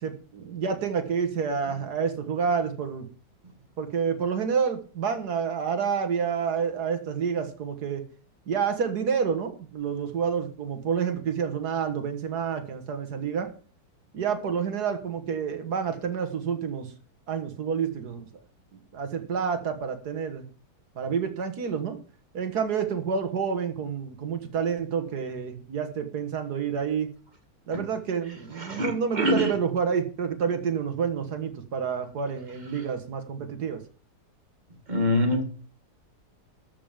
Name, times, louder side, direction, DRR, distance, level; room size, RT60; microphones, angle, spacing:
voice 1, 0.0-3.1 3.8-8.0 8.5-13.5 14.1-16.9 17.3-18.3 18.7-20.4 21.0-22.0 22.3-27.1 27.7-33.8, right 6 dB, 70° right, 2.1 m, -29 dB
voice 2, 28.6-29.5 34.9-35.4, left 1 dB, 25° right, 2.0 m, -24 dB
13.0 x 5.3 x 7.4 m
omnidirectional pair, 1.7 m